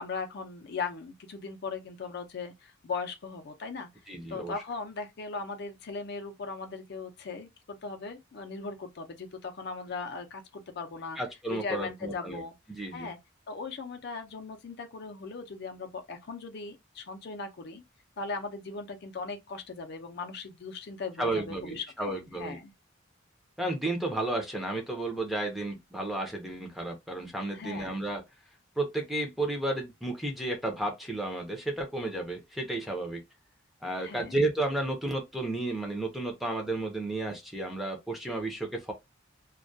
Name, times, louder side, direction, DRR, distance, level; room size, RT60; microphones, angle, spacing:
voice 1, 0.0-3.9 4.3-11.2 11.5-12.5 12.9-13.2 13.5-17.8 18.2-22.7 27.5-27.9 34.0-34.4, left 4 dB, 55° left, 0.4 m, -38 dB
voice 2, 4.1-4.5 11.2-12.4 12.7-13.1 21.2-22.6 23.6-28.2 28.8-33.2 33.8-38.9, right 2 dB, ahead, 0.5 m, -32 dB
2.2 x 2.1 x 2.6 m
head